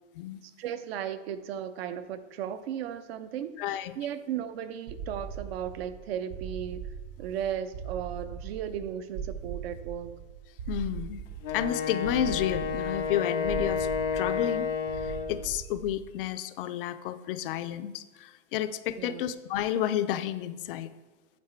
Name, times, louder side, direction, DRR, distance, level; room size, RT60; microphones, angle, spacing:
voice 1, 0.6-3.6 4.0-6.9 7.2-10.2 19.0-19.2, right 9 dB, 55° right, 11 dB, 0.7 m, -35 dB
voice 2, 3.6-3.9 10.7-11.2 11.5-13.9 14.1-14.7 14.9-20.9, left 11 dB, 45° left, 12 dB, 0.5 m, -31 dB
sound 1, 4.9-16.2, right 7 dB, 30° right, 0.4 m, -40 dB
Wind instrument woodwind instrument, 11.4-15.5, left 6 dB, 85° left, 1.6 m, -31 dB
9.4 x 7.1 x 4.4 m, 1.2 s
supercardioid pair, 150°, 38 cm